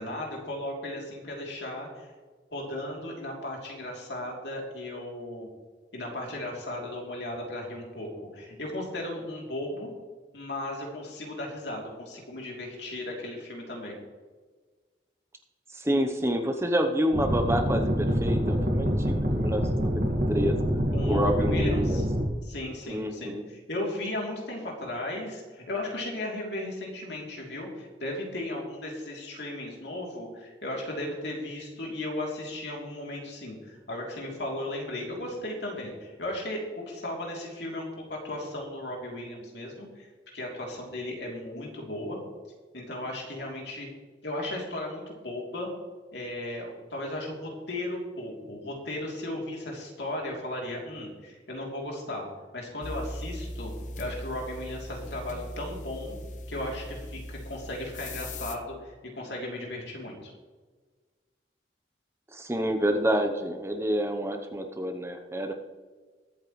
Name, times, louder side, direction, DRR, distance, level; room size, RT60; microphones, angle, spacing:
voice 1, 0.0-2.1 2.5-5.5 5.9-8.1 8.3-9.9 10.3-14.0 20.9-22.0 22.4-40.1 40.3-42.2 42.7-43.9 44.2-45.7 46.1-52.3 52.5-53.7 54.0-56.2 56.5-60.3, left 1 dB, 70° left, -1 dB, 3.1 m, -36 dB
voice 2, 15.7-20.5 21.1-22.0 22.8-23.4 62.3-65.5, equal, 15° right, 5 dB, 0.8 m, -28 dB
sound 1, 17.1-22.2, equal, 55° right, 2.0 m, -26 dB
sound 2, 52.8-58.6, left 1 dB, 40° left, 0.7 m, -39 dB
21.5 x 8.4 x 3.2 m, 1.4 s
head